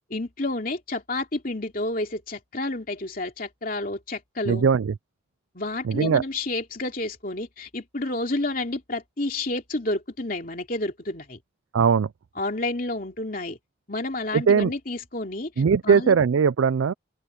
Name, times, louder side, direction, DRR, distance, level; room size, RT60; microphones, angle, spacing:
voice 1, 0.1-4.7 5.5-11.4 12.4-13.6 13.9-15.5 15.8-16.2, left 2 dB, 45° left, 2.9 m, -30 dB
voice 2, 4.5-4.9 5.8-6.2 11.7-12.1 14.3-14.7 15.6-16.9, right 6 dB, 90° right, 0.4 m, -20 dB
open air
head